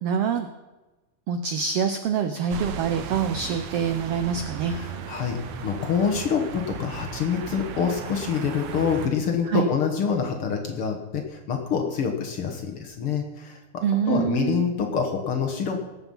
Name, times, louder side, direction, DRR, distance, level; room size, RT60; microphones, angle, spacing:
voice 1, 0.0-0.5 1.3-4.7 9.5-9.7 13.8-14.6, right 7 dB, 85° right, 8 dB, 1.3 m, -25 dB
sound 1, 2.5-9.1, right 7 dB, 65° right, 2.0 m, -36 dB
voice 2, 4.7-15.9, left 6 dB, 55° left, 3 dB, 1.8 m, -26 dB
19.0 x 8.1 x 5.5 m, 1.1 s
omnidirectional pair, 3.6 m